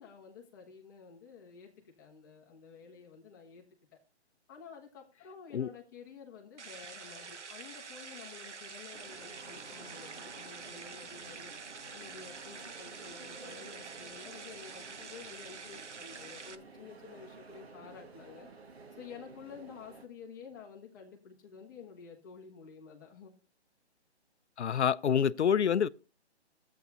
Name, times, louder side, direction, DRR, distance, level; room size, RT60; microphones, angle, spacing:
voice 1, 0.0-1.7 2.0-3.6 4.5-11.5 11.9-18.5 18.9-23.3, left 6 dB, 15° left, 1.3 m, -51 dB
sound 1, 6.6-16.5, right 5 dB, 85° right, 1.3 m, -47 dB
sound 2, 8.9-20.1, right 3 dB, 60° right, 1.9 m, -52 dB
voice 2, 24.6-25.9, left 8 dB, 75° left, 0.6 m, -27 dB
13.5 x 8.3 x 2.7 m
hypercardioid pair, 165°, 34 cm